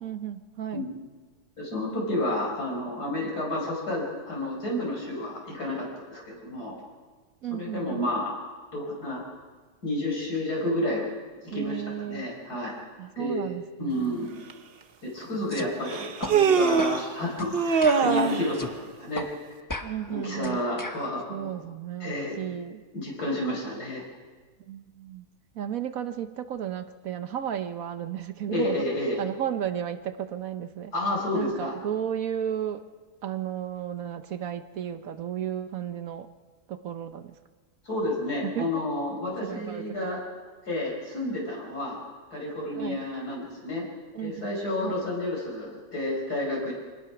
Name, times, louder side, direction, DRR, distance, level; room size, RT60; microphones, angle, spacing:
voice 1, 0.0-0.9 7.4-8.1 11.5-12.3 13.0-14.0 19.8-20.6 21.3-22.8 24.6-25.3 25.5-28.8 29.2-30.9 31.3-32.8 33.2-36.3 36.7-37.3 38.4-38.7 39.4-40.1 42.8-43.0 44.1-44.5 44.8-45.1, right 10 dB, 65° right, 10 dB, 1.2 m, -33 dB
voice 2, 1.6-6.7 7.6-8.3 8.7-9.2 9.8-11.1 11.5-12.8 13.2-13.5 13.8-14.3 15.0-18.7 19.0-19.3 20.1-21.5 22.0-22.3 22.9-24.0 28.5-29.2 30.9-31.7 37.9-40.2 40.6-42.0 42.3-43.8 44.2-46.7, left 1 dB, 85° left, -3 dB, 5.6 m, -30 dB
Human voice, 14.5-14.6 15.9-17.1 17.5-18.5, right 6 dB, 45° right, 1.0 m, -22 dB
sound 1, 15.5-15.7 16.2-16.4 16.8-17.0 17.4-17.5 17.8-18.8 19.2-19.3 19.7-21.1, left 2 dB, 15° left, 0.8 m, -36 dB
24.5 x 18.5 x 5.9 m, 1.4 s
omnidirectional pair, 1.6 m